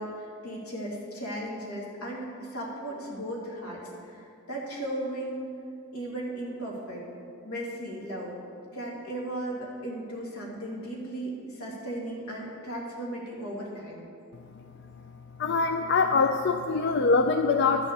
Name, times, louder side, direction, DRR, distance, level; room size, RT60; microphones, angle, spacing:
voice 1, 0.0-5.5 5.9-7.1 7.4-8.3 8.7-14.1, right 1 dB, 85° left, -3 dB, 2.5 m, -36 dB
voice 2, 15.4-17.9, left 4 dB, 50° left, 6 dB, 0.4 m, -23 dB
12.0 x 6.3 x 6.7 m, 2.4 s
head